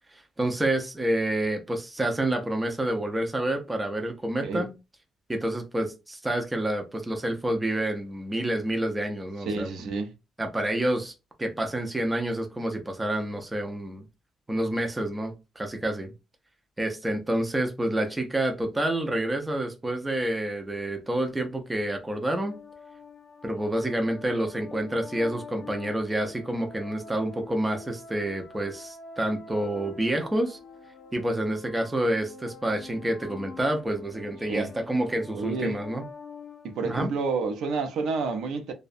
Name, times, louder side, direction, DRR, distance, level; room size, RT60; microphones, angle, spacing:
voice 1, 0.1-4.7 5.3-9.7 10.4-11.1 11.4-14.0 14.5-16.1 16.8-22.6 23.4-30.6 31.1-36.1 36.8-37.1, right 1 dB, 10° right, 0.4 m, -28 dB
voice 2, 9.5-10.1 34.5-34.7 35.3-35.8 36.6-38.7, right 4 dB, 70° right, 0.5 m, -29 dB
sound 1, 22.1-37.5, left 4 dB, 55° left, 0.5 m, -46 dB
2.6 x 2.1 x 2.4 m
cardioid pair, 150°, 0 cm